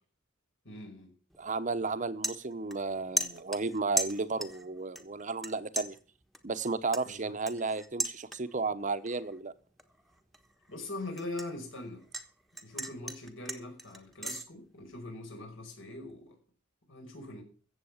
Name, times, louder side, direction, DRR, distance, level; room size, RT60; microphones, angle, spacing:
voice 1, 0.6-1.1 7.0-7.3 10.7-12.0 12.6-16.4 16.9-17.4, left 2 dB, 75° left, 3 dB, 5.3 m, -42 dB
sound 1, 1.3-1.5 1.9-2.9 3.2-4.7 5.0-5.5 5.8-8.7 9.1-9.4 9.8-12.3 12.6-14.4, right 1 dB, ahead, 1.2 m, -37 dB
voice 2, 1.4-6.0 6.4-9.5, right 3 dB, 40° right, 12 dB, 0.9 m, -33 dB
15.0 x 7.7 x 7.2 m, 0.40 s
head